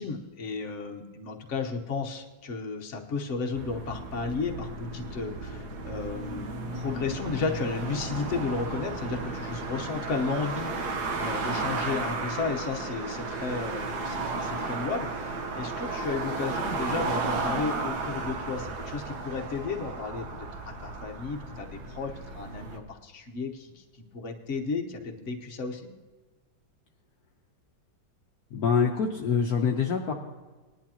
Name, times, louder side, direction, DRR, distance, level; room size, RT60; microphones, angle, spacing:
voice 1, 0.0-20.3 20.6-23.8 24.1-25.9, left 4 dB, 45° left, 2 dB, 1.3 m, -33 dB
sound 1, 3.6-22.8, right 3 dB, 65° right, 1.6 m, -34 dB
voice 2, 28.5-30.1, left 6 dB, 65° left, 0 dB, 1.2 m, -25 dB
20.0 x 11.0 x 2.9 m, 1.3 s
omnidirectional pair, 1.9 m